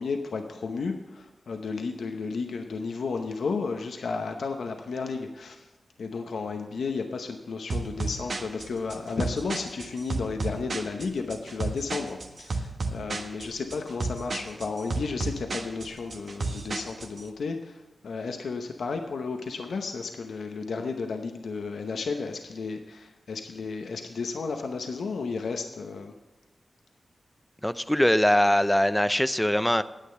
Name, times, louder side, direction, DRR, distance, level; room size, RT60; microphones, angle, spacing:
voice 1, 0.0-5.7 6.0-26.1, left 4 dB, 90° left, 5 dB, 0.8 m, -33 dB
sound 1, 7.7-17.2, right 3 dB, 70° right, 1.3 m, -33 dB
voice 2, 27.6-29.8, left 1 dB, 10° left, 13 dB, 0.6 m, -22 dB
9.9 x 8.4 x 6.7 m, 1.1 s
cardioid pair, 50°, 0 cm